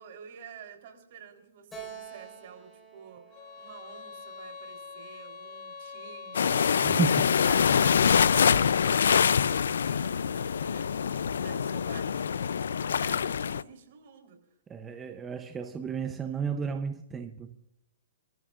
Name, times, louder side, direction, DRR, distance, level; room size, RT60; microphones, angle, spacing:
voice 1, 0.0-14.4, right 7 dB, 50° right, 3.8 m, -50 dB
Keyboard (musical), 1.7-5.2, right 6 dB, 10° left, 4.6 m, -48 dB
sound 1, 3.3-8.1, left 4 dB, 30° left, 3.3 m, -45 dB
sound 2, 6.3-13.6, left 7 dB, 80° left, 0.5 m, -25 dB
voice 2, 14.7-17.6, right 6 dB, 15° right, 0.7 m, -32 dB
28.5 x 14.0 x 2.5 m
hypercardioid pair, 155°, 0 cm